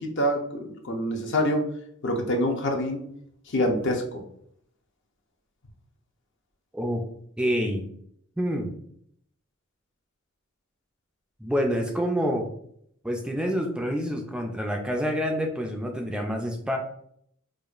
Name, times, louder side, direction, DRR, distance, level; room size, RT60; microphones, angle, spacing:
voice 1, 0.0-1.6 2.0-3.0 3.5-4.0, equal, 60° left, 2 dB, 0.7 m, -26 dB
voice 2, 6.7-7.0 7.4-7.9 8.4-8.7 11.4-12.5 13.0-16.8, equal, 5° right, 2 dB, 0.3 m, -27 dB
4.7 x 2.4 x 2.4 m, 0.67 s
head